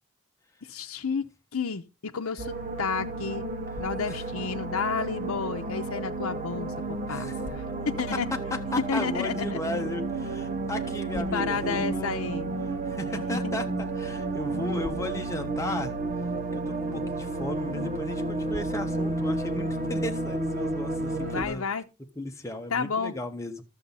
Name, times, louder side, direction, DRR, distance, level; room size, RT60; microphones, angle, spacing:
voice 1, 0.7-1.2 1.5-3.5 3.8-6.7 7.1-8.3 8.9-9.6 11.1-12.5 13.3-13.5 21.2-21.8 22.7-23.1, left 5 dB, 85° left, 0.7 m, -31 dB
sound 1, 2.4-21.4, right 2 dB, 35° right, 0.9 m, -31 dB
voice 2, 7.1-7.4 8.3-12.2 12.9-16.0 16.5-21.7 22.2-23.6, left 1 dB, 15° left, 1.1 m, -35 dB
12.0 x 7.1 x 3.9 m
head